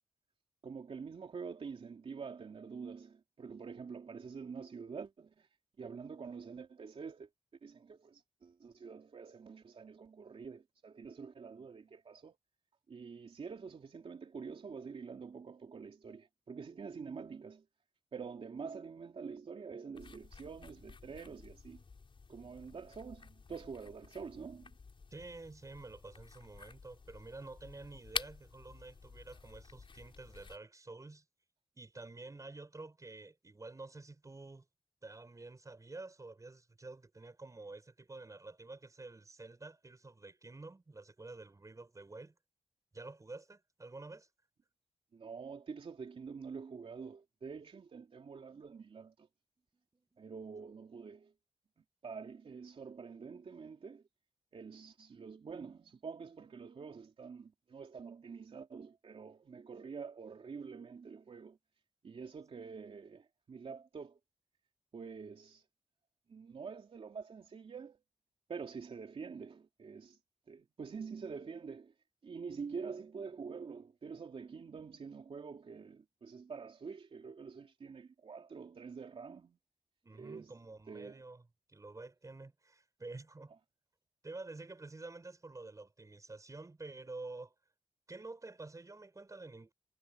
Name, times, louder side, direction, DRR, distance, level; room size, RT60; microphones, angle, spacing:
voice 1, 0.6-5.5 5.8-7.3 7.6-12.4 12.9-17.6 18.1-21.8 22.3-24.7 45.1-49.3 50.2-51.3 52.0-54.0 54.5-61.6 62.0-64.2 64.9-65.6 66.3-68.0 68.5-70.2 70.5-71.9 72.2-79.6 80.1-80.5 80.9-81.2, right 5 dB, 60° right, 3.2 m, -47 dB
sound 1, 19.9-30.6, left 4 dB, 50° left, 4.8 m, -49 dB
voice 2, 25.1-31.2 31.7-34.7 35.0-42.3 42.9-44.3 49.6-50.3 80.0-83.5 84.2-87.5 88.1-89.7, right 3 dB, 30° right, 4.8 m, -49 dB
cardioid pair, 65°, 11 cm